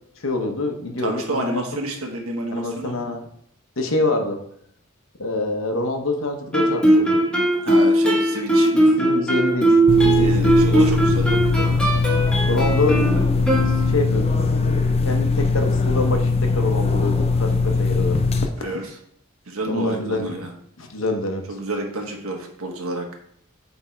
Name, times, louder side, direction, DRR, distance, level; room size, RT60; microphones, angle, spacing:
voice 1, 0.2-1.6 2.5-3.3 3.8-4.4 5.2-7.2 8.7-10.7 12.5-13.0 13.6-14.5 15.0-18.2 18.6-18.8 19.7-20.4 20.8-21.4, left 2 dB, 65° left, 4 dB, 1.0 m, -26 dB
voice 2, 1.0-3.0 7.6-8.7 10.1-11.8 18.6-18.8 19.5-20.5 21.5-23.1, right 2 dB, 85° right, 2 dB, 1.4 m, -29 dB
Guitar, 6.5-14.2, right 1 dB, 5° left, 1.2 m, -19 dB
sound 1, 9.9-18.5, left 4 dB, 30° left, 0.5 m, -20 dB
8.2 x 3.5 x 4.5 m, 0.71 s
head